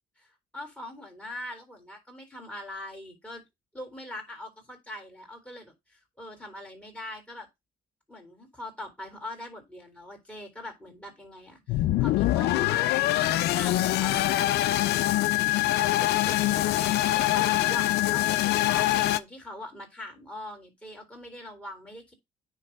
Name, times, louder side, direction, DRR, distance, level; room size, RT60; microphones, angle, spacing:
voice 1, 0.5-3.4 3.7-7.5 8.1-14.5 15.6-22.1, left 1 dB, 5° left, 3.7 m, -42 dB
sound 1, 11.7-19.2, left 15 dB, 75° left, 0.6 m, -24 dB
9.6 x 3.3 x 5.4 m
cardioid pair, 110°, 17 cm